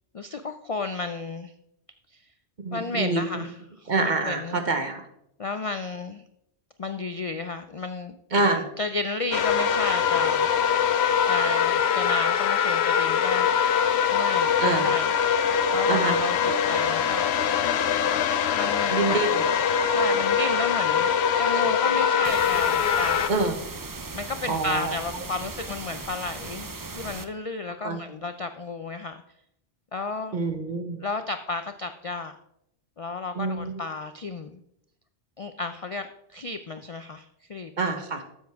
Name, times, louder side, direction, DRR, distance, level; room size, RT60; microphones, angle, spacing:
voice 1, 0.1-1.5 2.1-2.2 2.7-4.6 5.4-6.2 6.8-8.2 8.5-10.5 11.3-13.5 14.1-15.4 15.7-17.3 18.5-19.3 19.9-23.4 24.1-29.2 29.9-30.4 31.0-32.3 33.0-34.6 35.4-37.7, left 3 dB, 50° left, 8 dB, 0.4 m, -33 dB
voice 2, 2.6-3.4 3.9-5.1 8.3-8.7 14.6-14.9 15.9-16.2 18.9-19.4 19.8-19.9 21.5-21.6 23.3-23.6 24.4-24.9 27.8-28.0 30.3-31.0 33.3-33.8 37.8-38.2, right 3 dB, 45° right, 7 dB, 1.1 m, -26 dB
sound 1, 9.3-23.3, left 7 dB, 75° left, 0.9 m, -23 dB
sound 2, 22.2-27.2, right 3 dB, 25° right, 0.4 m, -38 dB
12.5 x 7.4 x 3.5 m, 0.77 s
omnidirectional pair, 1.1 m